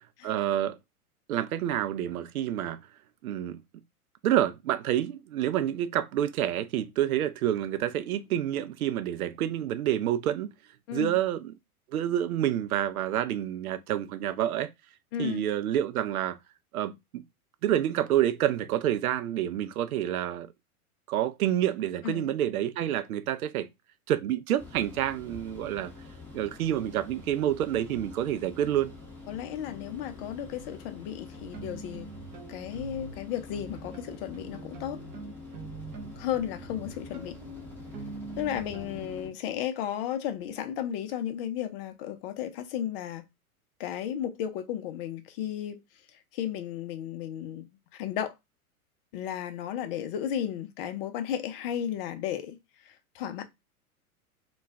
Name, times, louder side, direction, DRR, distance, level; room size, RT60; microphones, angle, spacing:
voice 1, 0.2-0.8 1.3-2.8 3.2-3.6 4.2-10.5 10.9-11.5 11.9-14.7 15.2-16.4 16.7-17.2 17.6-20.5 21.1-23.7 24.1-25.9 26.3-28.9, right 11 dB, 70° right, 0.5 m, -28 dB
voice 2, 15.1-15.4 22.0-22.3 29.3-32.1 32.5-35.0 36.2-37.4 38.4-43.2 43.8-45.8 46.3-47.7 47.9-48.3 49.1-52.6 52.9-53.4, left 10 dB, 40° left, 0.6 m, -34 dB
sound 1, 24.6-39.3, left 3 dB, 5° left, 0.7 m, -46 dB
sound 2, 30.5-30.8 31.3-33.2 33.5-39.2, right 4 dB, 20° right, 0.3 m, -44 dB
2.3 x 2.2 x 3.4 m
figure-of-eight pair, 100°, 44 cm